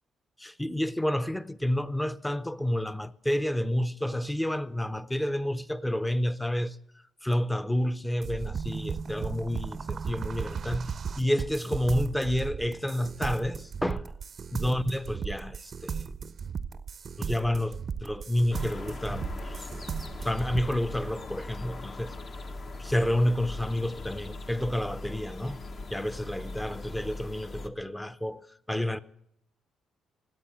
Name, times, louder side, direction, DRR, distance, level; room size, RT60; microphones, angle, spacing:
voice 1, 0.4-6.8 7.2-14.1 14.5-16.1 17.2-19.7 20.2-22.2 22.8-25.6 25.9-29.0, left 1 dB, 10° left, 0.7 m, -30 dB
sound 1, 8.2-20.8, right 6 dB, 45° right, 0.6 m, -36 dB
sound 2, 18.5-27.7, left 2 dB, 50° left, 1.2 m, -40 dB
17.5 x 8.3 x 9.0 m
cardioid pair, 90°, 0 cm